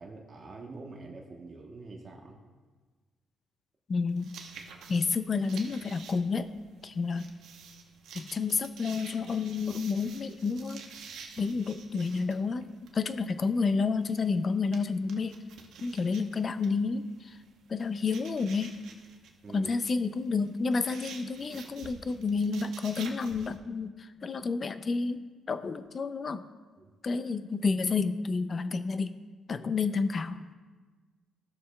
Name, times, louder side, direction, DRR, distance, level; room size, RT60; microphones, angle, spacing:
voice 1, 0.0-2.4 11.5-11.6 19.4-19.7 26.8-26.9 29.6-29.7, right 3 dB, 40° right, 0 dB, 1.1 m, -45 dB
voice 2, 3.9-4.3 4.9-6.5 6.8-7.3 8.1-10.8 11.4-15.3 15.8-17.4 17.7-18.8 19.5-26.4 27.0-29.2 29.5-30.5, left 4 dB, 40° left, 11 dB, 0.5 m, -30 dB
sound 1, 4.1-23.6, right 6 dB, 80° right, 0.9 m, -50 dB
15.5 x 6.7 x 2.3 m, 1.4 s
cardioid pair, 90°, 0 cm